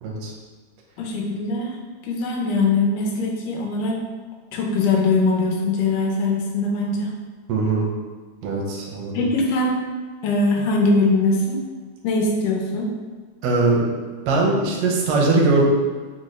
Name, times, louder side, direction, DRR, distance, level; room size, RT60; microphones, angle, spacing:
voice 1, 0.0-0.3 7.5-7.9 8.4-9.2 13.4-13.8 14.3-15.6, right 3 dB, 75° right, -2 dB, 1.5 m, -20 dB
voice 2, 1.0-1.8 2.0-4.0 4.5-7.1 9.1-9.8 10.2-11.6 12.0-12.9, left 3 dB, 80° left, -1 dB, 2.1 m, -21 dB
5.4 x 2.3 x 3.1 m, 1.4 s
omnidirectional pair, 3.7 m